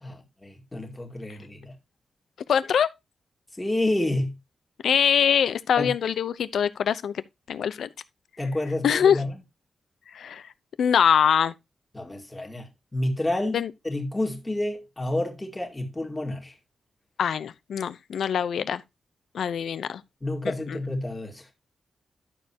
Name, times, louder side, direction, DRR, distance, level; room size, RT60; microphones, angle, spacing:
voice 1, 0.0-1.7 3.6-4.4 5.8-5.9 8.4-9.3 11.9-16.5 20.2-21.5, left 1 dB, 10° left, 2.1 m, -29 dB
voice 2, 2.5-2.9 4.8-7.2 7.5-7.9 8.8-9.2 10.1-10.4 10.8-11.5 13.5-13.7 17.2-18.8 19.3-20.0 20.4-20.8, left 8 dB, 80° left, 0.8 m, -23 dB
12.0 x 7.0 x 2.9 m
wide cardioid pair, 175°, 0 cm